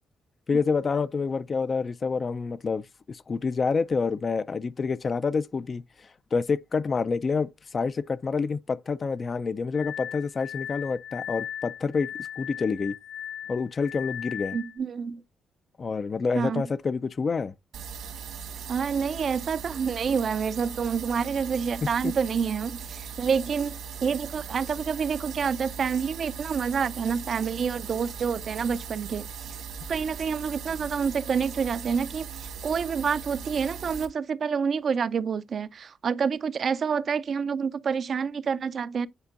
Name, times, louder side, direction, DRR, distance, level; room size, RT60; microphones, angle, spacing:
voice 1, 0.5-12.1 12.4-12.9 13.5-14.6 15.8-17.5 21.8-22.1, left 5 dB, 45° left, 0.3 m, -28 dB
Glass, 9.7-14.8, left 10 dB, 75° left, 2.0 m, -38 dB
voice 2, 14.5-15.2 16.3-16.6 18.7-29.3 29.9-39.1, right 6 dB, 55° right, 0.4 m, -28 dB
sound 1, 17.7-34.1, right 6 dB, 80° right, 1.6 m, -39 dB
9.6 x 4.4 x 2.4 m
cardioid pair, 75°, 0 cm